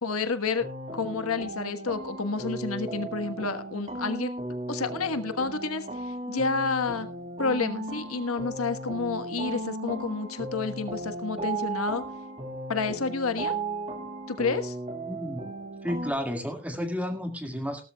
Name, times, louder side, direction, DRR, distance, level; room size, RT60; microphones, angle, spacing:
voice 1, 0.0-4.3 4.7-7.1 7.4-12.0 12.7-13.5 14.3-14.7, left 4 dB, 90° left, 9 dB, 1.4 m, -30 dB
sound 1, 0.6-16.1, right 2 dB, 30° right, 2.2 m, -36 dB
voice 2, 15.1-15.5 15.8-17.8, equal, 5° right, 5 dB, 2.1 m, -32 dB
17.5 x 13.0 x 2.3 m, 0.31 s
head